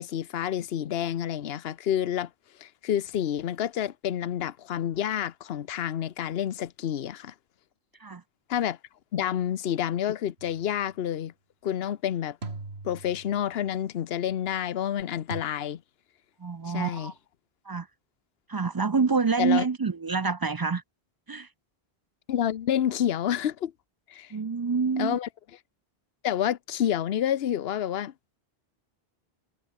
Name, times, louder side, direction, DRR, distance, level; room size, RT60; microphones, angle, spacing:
voice 1, 0.0-2.3 2.6-7.3 8.5-8.8 9.1-11.3 11.6-12.4 12.8-15.8 16.7-17.1 19.4-19.7 22.3-23.7 24.1-24.3 25.0-25.3 26.2-28.1, left 10 dB, 75° left, 1.0 m, -29 dB
sound 1, 10.4-10.8 12.4-13.6 15.3-15.4, right 3 dB, 85° right, 3.1 m, -40 dB
voice 2, 16.4-17.1 17.7-17.9 18.5-20.8 21.3-21.5 24.3-25.2, right 4 dB, 35° right, 0.3 m, -27 dB
omnidirectional pair, 1.0 m